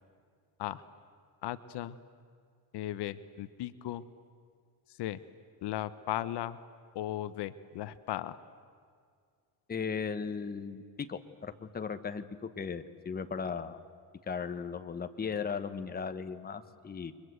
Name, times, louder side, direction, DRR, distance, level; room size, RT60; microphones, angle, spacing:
voice 1, 1.4-2.0 2.7-4.0 5.0-5.2 5.6-6.6 6.9-8.4, left 13 dB, 70° left, 13 dB, 1.0 m, -36 dB
voice 2, 9.7-13.8 14.3-17.1, left 6 dB, 20° left, 9 dB, 1.1 m, -37 dB
29.5 x 23.5 x 8.0 m, 2.2 s
cardioid pair, 140°, 42 cm